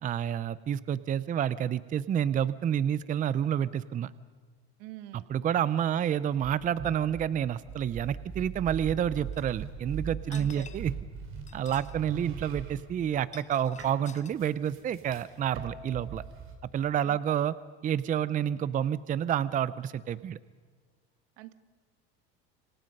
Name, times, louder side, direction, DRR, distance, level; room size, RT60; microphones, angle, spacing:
voice 1, 0.0-4.1 5.1-10.9 11.5-16.2 16.7-17.5 17.8-20.4, right 9 dB, 25° right, 17 dB, 0.6 m, -29 dB
voice 2, 4.8-5.3 10.3-10.7 17.0-17.2 21.4-21.5, right 15 dB, 70° right, 12 dB, 1.6 m, -45 dB
sound 1, 6.4-13.5 13.8-16.6, right 7 dB, 45° right, 3.8 m, -40 dB
sound 2, 9.3-9.5 10.2-11.0 11.4-12.0 12.2-12.3 13.1-14.3, left 7 dB, 25° left, 1.1 m, -51 dB
28.0 x 26.0 x 5.4 m, 1.5 s
supercardioid pair, 125°, 29 cm